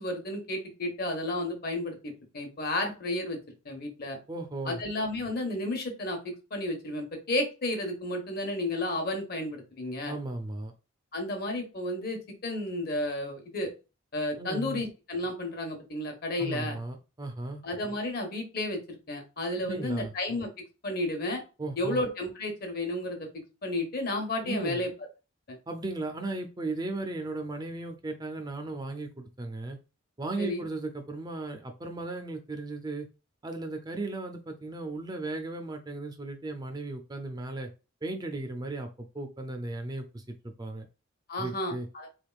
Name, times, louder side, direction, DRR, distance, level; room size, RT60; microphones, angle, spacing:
voice 1, 0.0-3.4 3.6-4.2 4.6-10.1 11.1-13.7 14.1-16.8 17.6-20.5 20.8-21.4 21.8-23.3 23.6-24.9 25.5-25.6 30.4-30.6 41.3-42.1, left 1 dB, 50° left, 4 dB, 1.1 m, -32 dB
voice 2, 4.3-4.8 10.1-10.7 14.4-14.8 16.4-17.6 19.6-20.1 21.6-22.0 24.4-24.8 25.7-29.8 30.2-33.1 33.4-37.7 38.0-40.9 41.4-41.9, right 2 dB, 20° right, 5 dB, 0.4 m, -36 dB
3.8 x 3.4 x 2.4 m, 0.30 s
head